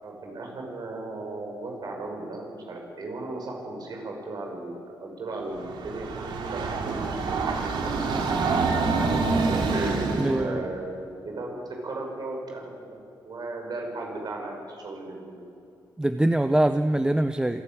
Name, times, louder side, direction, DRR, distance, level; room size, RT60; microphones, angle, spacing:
voice 1, 0.0-8.2 8.8-9.2 9.7-11.6 11.8-12.7 13.2-15.4, right 2 dB, 60° right, 1 dB, 6.1 m, -36 dB
Train, 5.5-10.5, right 4 dB, 85° right, 2.7 m, -26 dB
voice 2, 10.1-10.6 16.0-17.6, right 1 dB, 10° right, 9 dB, 0.6 m, -23 dB
26.0 x 12.0 x 9.3 m, 2.7 s
cardioid pair, 90°, 8 cm